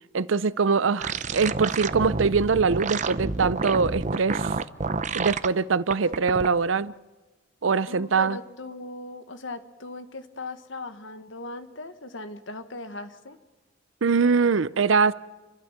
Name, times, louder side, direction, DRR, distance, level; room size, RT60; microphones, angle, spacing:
voice 1, 0.1-4.5 5.1-6.9 7.6-8.4 14.0-15.1, right 5 dB, 80° right, 0.6 m, -23 dB
sound 1, 1.0-5.5 5.9-6.5, right 4 dB, 40° right, 0.6 m, -29 dB
voice 2, 7.9-13.4, left 2 dB, 75° left, 1.5 m, -38 dB
29.5 x 12.5 x 7.3 m
head